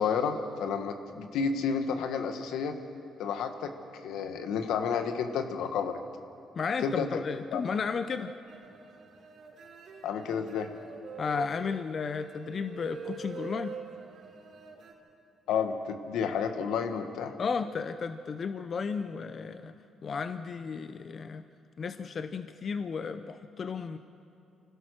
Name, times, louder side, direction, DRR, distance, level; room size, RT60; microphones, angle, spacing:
voice 1, 0.0-2.7 3.2-6.0 6.8-7.2 7.5-7.6 10.0-10.7 15.5-17.3, left 6 dB, 85° left, 7 dB, 1.4 m, -31 dB
voice 2, 6.6-8.3 11.2-13.8 17.4-19.7 20.0-21.4 21.8-24.0, left 5 dB, 50° left, 11 dB, 0.6 m, -33 dB
sound 1, 8.5-14.9, right 5 dB, 60° right, 3.2 m, -45 dB
25.5 x 16.5 x 6.4 m, 2.7 s
cardioid pair, 90°, 0 cm